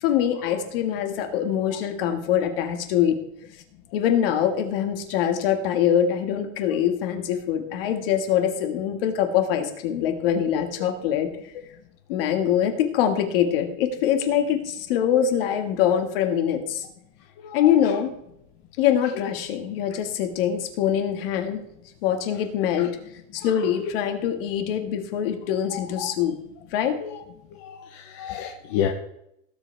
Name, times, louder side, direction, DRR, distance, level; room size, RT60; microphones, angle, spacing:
voice 1, 0.0-3.2 3.9-11.3 12.1-16.8 17.5-18.1 18.8-21.6 22.0-22.9 23.3-26.4 26.7-27.0, left 9 dB, 45° left, 5 dB, 1.8 m, -23 dB
voice 2, 17.4-17.7 19.2-19.3 23.8-23.9 25.7-26.1 27.0-27.2 27.6-28.9, left 9 dB, 30° left, 2 dB, 0.8 m, -30 dB
18.5 x 7.9 x 3.4 m, 0.77 s
supercardioid pair, 175°, 40 cm